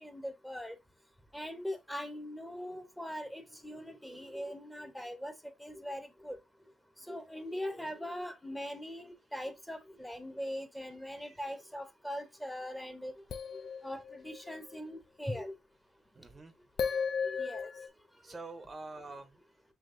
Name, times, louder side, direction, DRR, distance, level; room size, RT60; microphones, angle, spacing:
voice 1, 0.0-0.7 1.3-5.3 5.6-6.4 7.1-13.1 13.8-15.5 17.2-17.7, equal, 5° left, 0.8 m, -41 dB
voice 2, 11.2-11.6 13.9-14.0 16.1-16.5 16.9-17.0 18.2-19.4, right 3 dB, 30° right, 0.6 m, -48 dB
sound 1, 13.3-14.7 16.8-17.9, left 6 dB, 55° left, 0.5 m, -35 dB
5.8 x 2.9 x 2.5 m
cardioid pair, 90°, 0 cm